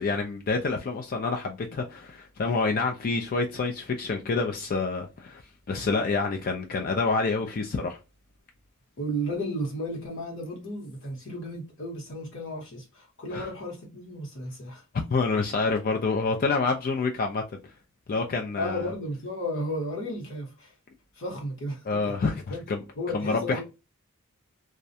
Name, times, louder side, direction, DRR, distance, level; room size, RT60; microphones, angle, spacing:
voice 1, 0.0-5.4 5.7-8.0 13.3-13.5 15.1-17.6 18.1-18.9 21.9-22.8 23.1-23.6, left 4 dB, 40° left, 0.4 m, -27 dB
voice 2, 9.0-14.8 18.6-20.7 21.2-22.1 22.5-22.6 23.0-23.6, equal, 60° left, 1.1 m, -33 dB
2.3 x 2.1 x 2.6 m
head